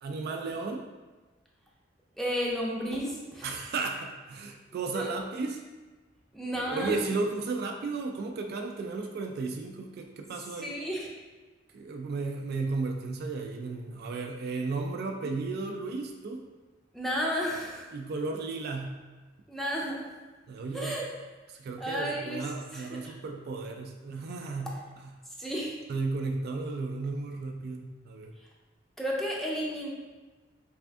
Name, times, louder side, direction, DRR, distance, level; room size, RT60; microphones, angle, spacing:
voice 1, 0.0-0.8 3.4-5.6 6.7-10.7 11.7-16.4 17.9-19.0 20.5-21.0 21.5-24.8 25.9-28.3, right 3 dB, 55° right, 3 dB, 0.3 m, -34 dB
voice 2, 2.2-3.5 4.9-5.2 6.3-7.0 10.6-11.1 16.9-17.9 19.5-20.0 20.7-21.1 21.8-23.1 25.4-25.8 29.0-29.9, equal, ahead, -4 dB, 0.5 m, -32 dB
3.4 x 2.5 x 3.4 m, 1.3 s
head